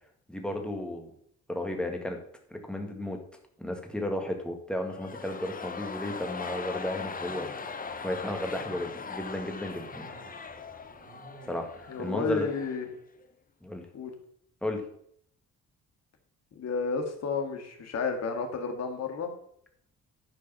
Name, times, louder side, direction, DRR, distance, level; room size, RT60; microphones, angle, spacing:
voice 1, 0.3-1.1 1.5-2.2 2.5-3.2 3.6-7.5 8.0-10.1 11.5-12.5 13.6-13.8 14.6-14.8, left 1 dB, 5° left, 3 dB, 1.8 m, -33 dB
sound 1, 4.8-12.9 13.2-13.3, left 5 dB, 30° left, 0.8 m, -40 dB
sound 2, 7.2-12.2, right 2 dB, 90° right, 2.9 m, -53 dB
voice 2, 11.9-12.9 13.9-14.1 16.6-19.3, left 4 dB, 60° left, 5 dB, 1.9 m, -31 dB
10.5 x 5.0 x 5.7 m, 0.68 s
cardioid pair, 90°, 30 cm